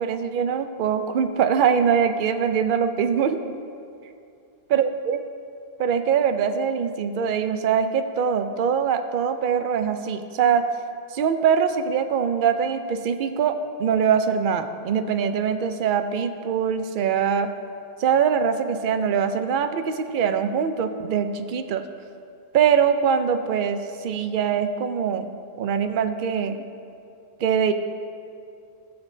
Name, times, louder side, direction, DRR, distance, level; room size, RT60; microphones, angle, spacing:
voice 1, 0.0-3.4 4.7-5.2 5.8-10.6 11.1-17.5 18.0-21.8 22.5-25.3 25.6-26.6 27.4-27.7, right 7 dB, 60° right, 9 dB, 0.7 m, -23 dB
19.0 x 7.0 x 2.7 m, 2.5 s
omnidirectional pair, 1.1 m